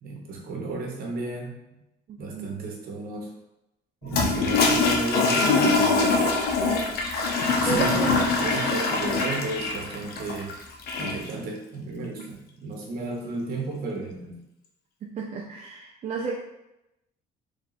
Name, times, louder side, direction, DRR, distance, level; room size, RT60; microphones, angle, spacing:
voice 1, 0.0-1.8 2.2-3.3 4.0-6.1 7.5-10.5 11.0-14.4, right 2 dB, 65° right, 0 dB, 1.1 m, -33 dB
voice 2, 2.1-2.5 7.6-8.1 15.0-16.4, right 6 dB, 45° right, -1 dB, 0.5 m, -32 dB
Toilet flush, 4.1-11.3, left 3 dB, 70° left, 0.8 m, -23 dB
3.4 x 2.7 x 4.0 m, 0.89 s
cardioid pair, 110°, 17 cm